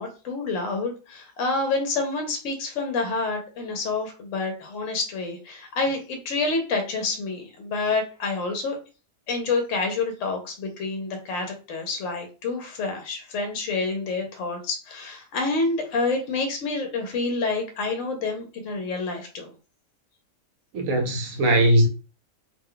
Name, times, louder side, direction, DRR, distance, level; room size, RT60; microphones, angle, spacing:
voice 1, 0.0-8.8 9.3-19.5, left 3 dB, 70° left, 1.0 m, -28 dB
voice 2, 20.7-21.9, right 1 dB, 80° right, 1.1 m, -20 dB
2.7 x 2.2 x 3.7 m
omnidirectional pair, 1.4 m